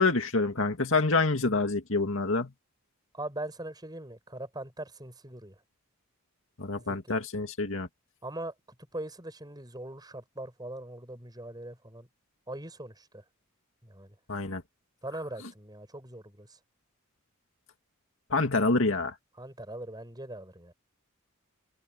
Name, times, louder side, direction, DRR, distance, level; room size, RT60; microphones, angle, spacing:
voice 1, 0.0-2.5 6.6-7.9 14.3-14.6 18.3-19.2, left 3 dB, 60° left, 2.3 m, -27 dB
voice 2, 3.1-5.5 6.8-7.2 8.2-8.5 8.9-12.1 12.5-13.2 13.8-14.1 15.0-16.6 19.4-20.7, right 1 dB, 20° right, 5.9 m, -41 dB
head